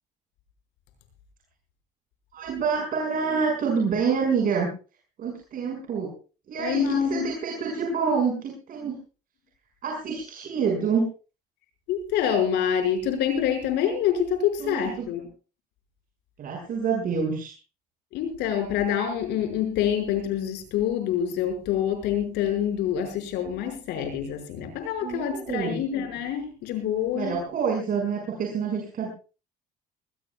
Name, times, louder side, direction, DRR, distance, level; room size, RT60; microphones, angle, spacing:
voice 1, 2.3-4.7 5.2-6.1 6.5-9.0 9.8-11.0 14.6-15.1 16.4-17.5 25.0-25.8 27.1-29.1, right 5 dB, 55° right, 0 dB, 6.2 m, -27 dB
voice 2, 6.6-7.3 11.9-15.2 18.1-27.3, left 9 dB, 85° left, 6 dB, 5.9 m, -26 dB
21.5 x 20.5 x 2.4 m, 0.35 s
cardioid pair, 110°, 17 cm